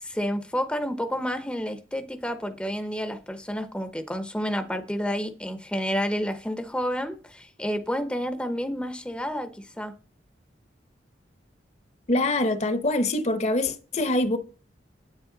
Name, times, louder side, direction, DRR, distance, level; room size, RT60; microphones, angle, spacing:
voice 1, 0.0-9.9, equal, 5° left, 0.7 m, -30 dB
voice 2, 12.1-14.4, left 2 dB, 35° left, 0.8 m, -24 dB
9.8 x 8.6 x 3.9 m
head